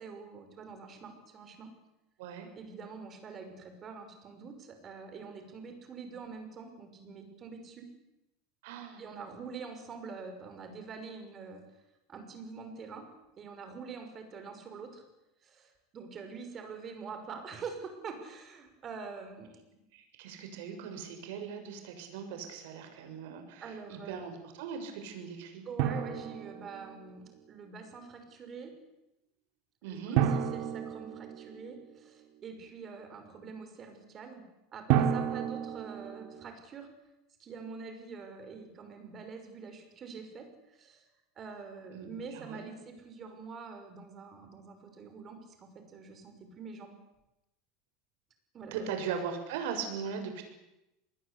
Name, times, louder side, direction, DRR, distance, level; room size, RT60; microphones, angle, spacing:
voice 1, 0.0-1.7 2.6-7.9 9.0-11.6 12.1-13.1 13.4-15.0 15.4-19.6 23.6-24.2 25.7-28.7 29.9-34.4 34.7-36.9 37.4-41.0 41.4-47.0 48.5-48.9, right 5 dB, 30° right, 6 dB, 6.0 m, -45 dB
voice 2, 8.6-9.0 19.9-25.6 29.8-30.2 41.9-42.7 48.7-50.4, right 6 dB, 75° right, 6 dB, 6.8 m, -39 dB
Drum, 25.8-27.3 30.2-31.9 34.9-36.5, right 9 dB, 60° right, 3.0 m, -31 dB
26.5 x 20.5 x 8.6 m, 0.91 s
supercardioid pair, 145°, 0 cm